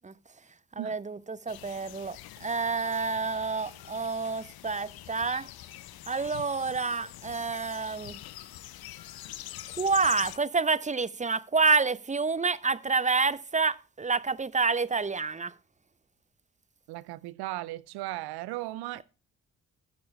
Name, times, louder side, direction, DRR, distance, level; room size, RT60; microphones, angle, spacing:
voice 1, 0.7-5.5 6.1-8.2 9.8-15.5, right 4 dB, 20° right, 0.7 m, -28 dB
sound 1, 1.5-10.4, left 13 dB, 65° left, 0.8 m, -44 dB
voice 2, 16.9-19.0, right 17 dB, 75° right, 0.6 m, -36 dB
13.5 x 8.6 x 3.2 m
hypercardioid pair, 45°, 39 cm